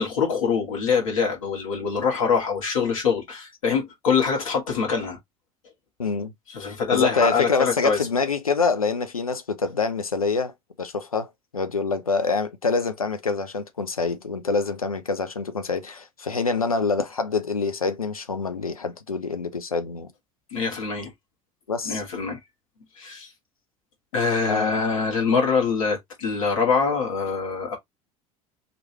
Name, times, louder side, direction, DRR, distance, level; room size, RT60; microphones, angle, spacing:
voice 1, 0.0-5.2 6.5-8.0 20.5-21.1 21.9-22.4 23.0-23.3 24.1-27.8, left 5 dB, 70° left, 2.3 m, -24 dB
voice 2, 6.0-6.3 6.9-10.5 10.8-20.1 21.7-22.0 24.5-24.9, left 4 dB, 85° left, 0.7 m, -26 dB
4.2 x 3.2 x 3.1 m
figure-of-eight pair, 70°, 18 cm